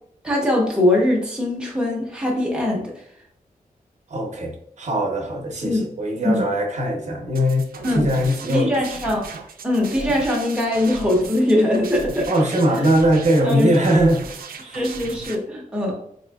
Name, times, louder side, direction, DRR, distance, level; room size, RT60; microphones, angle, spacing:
voice 1, 0.2-2.9 5.6-5.8 6.2-6.5 7.8-8.1 8.5-9.3 9.6-12.3 13.4-13.7 14.6-15.9, left 1 dB, 5° right, -3 dB, 0.8 m, -21 dB
voice 2, 4.1-7.7 7.9-8.8 12.3-14.2 14.7-14.8, right 1 dB, 55° right, 1 dB, 0.7 m, -20 dB
sound 1, 7.3-15.4, right 5 dB, 90° right, 0.4 m, -37 dB
4.3 x 2.6 x 2.2 m, 0.67 s
wide cardioid pair, 170°, 15 cm